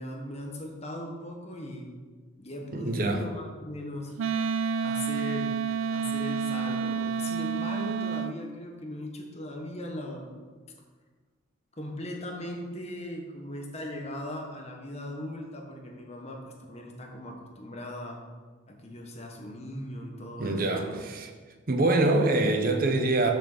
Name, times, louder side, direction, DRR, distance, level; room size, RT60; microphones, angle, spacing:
voice 1, 0.0-1.9 2.4-4.5 4.8-10.3 11.8-18.2 18.7-21.0, left 1 dB, 30° left, 1 dB, 1.3 m, -39 dB
voice 2, 2.7-3.2 20.4-21.3 21.7-23.3, right 2 dB, 45° right, 4 dB, 0.8 m, -25 dB
Wind instrument woodwind instrument, 4.2-8.3, right 6 dB, 80° right, 0.4 m, -29 dB
6.8 x 6.4 x 6.7 m, 1.5 s
head